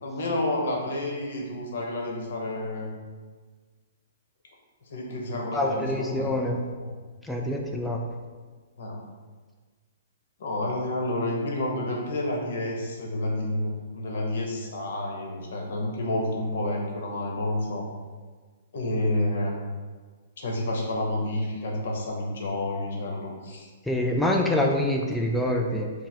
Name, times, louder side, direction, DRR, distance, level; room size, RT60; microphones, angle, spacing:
voice 1, 0.0-2.9 4.9-6.3 6.8-6.9 8.8-9.0 10.4-17.9 18.7-19.5 20.4-23.7, left 1 dB, 65° left, 0 dB, 0.8 m, -29 dB
voice 2, 5.5-6.6 7.2-8.0 23.9-25.9, left 1 dB, 5° left, 0 dB, 0.3 m, -25 dB
4.6 x 2.1 x 3.4 m, 1.4 s
hypercardioid pair, 130°, 0 cm